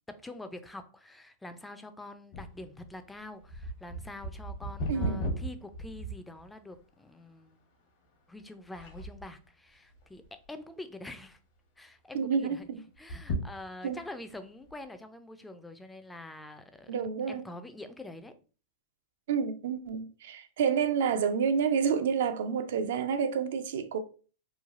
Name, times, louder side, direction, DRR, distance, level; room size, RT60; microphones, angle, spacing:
voice 1, 0.1-7.6 8.3-11.4 11.8-12.7 13.0-16.9 17.3-18.3, left 2 dB, 5° left, 0.3 m, -45 dB
sound 1, 2.3-6.8 7.4-7.5 8.1-8.4 8.7-9.4 9.9-10.6 11.0-11.1 11.3-11.4 12.9-14.1 14.7-14.8, right 1 dB, 65° left, 1.0 m, -36 dB
voice 2, 4.9-5.3 12.1-12.8 13.8-14.0 16.9-17.4 19.3-24.0, right 6 dB, 70° right, 0.4 m, -29 dB
3.1 x 2.3 x 2.4 m
hypercardioid pair, 125°, 0 cm